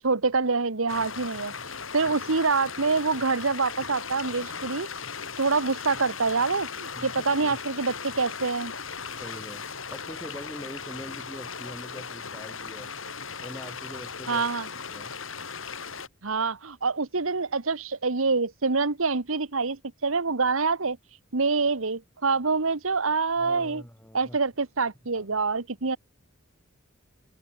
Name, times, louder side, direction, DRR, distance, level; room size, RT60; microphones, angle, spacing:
voice 1, 0.0-1.5 1.9-4.9 5.4-8.7 14.3-14.7 16.2-21.0 21.3-23.8 24.1-26.0, right 4 dB, 85° right, 1.4 m, -26 dB
sound 1, 0.9-16.1, left 5 dB, 75° left, 7.4 m, -37 dB
voice 2, 6.9-7.6 9.2-12.9 13.4-14.5 14.9-15.1 23.4-24.4 25.1-25.3, equal, 10° left, 6.4 m, -43 dB
head